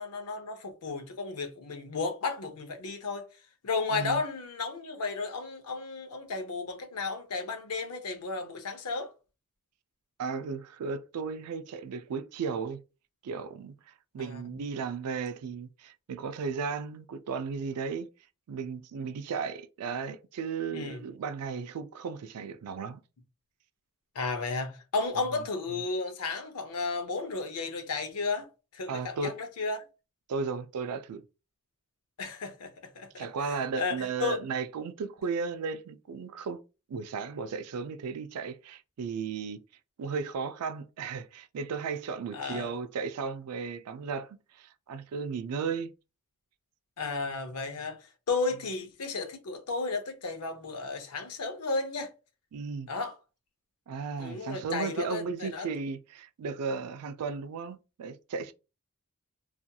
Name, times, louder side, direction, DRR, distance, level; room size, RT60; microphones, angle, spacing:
voice 1, 0.0-3.2 3.6-9.1 14.2-14.4 20.7-21.0 24.1-28.5 28.7-29.8 32.2-34.4 42.3-42.8 47.0-48.0 48.3-52.1 52.9-53.1 54.2-55.7, left 3 dB, 85° left, 0.6 m, -33 dB
voice 2, 3.9-4.2 10.2-12.8 13.2-18.1 18.5-23.0 28.9-29.3 30.3-31.2 33.2-36.6 36.9-39.6 40.0-45.9 52.5-52.9 53.9-58.5, right 5 dB, 85° right, 0.4 m, -35 dB
2.7 x 2.4 x 2.2 m
head